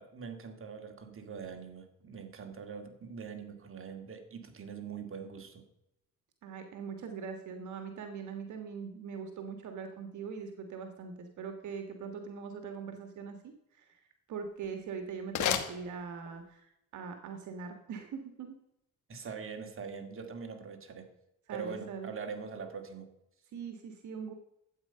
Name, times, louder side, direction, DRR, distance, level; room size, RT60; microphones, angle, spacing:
voice 1, 0.0-5.7 19.1-21.1 21.5-23.1, right 6 dB, 45° right, 5 dB, 2.2 m, -43 dB
voice 2, 6.4-14.0 14.3-18.5 21.5-22.1 23.5-24.3, right 6 dB, 75° right, 6 dB, 1.6 m, -42 dB
sound 1, 14.4-16.5, left 9 dB, 75° left, 1.5 m, -36 dB
12.5 x 8.5 x 5.5 m, 0.85 s
cardioid pair, 90°, 30 cm